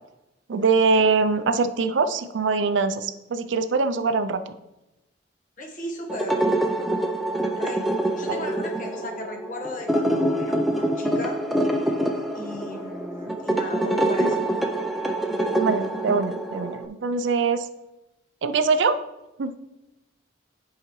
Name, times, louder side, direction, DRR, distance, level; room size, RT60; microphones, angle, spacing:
voice 1, 0.5-4.4 8.3-8.4 14.2-14.3 15.6-17.7 18.4-19.0 19.4-19.6, right 4 dB, 70° right, 10 dB, 0.4 m, -23 dB
voice 2, 5.6-6.5 7.5-7.9 8.2-11.4 12.3-14.4, left 1 dB, 45° left, 2 dB, 1.2 m, -36 dB
sound 1, 6.1-16.9, right 1 dB, ahead, 0.4 m, -25 dB
10.5 x 4.8 x 3.1 m, 0.98 s
head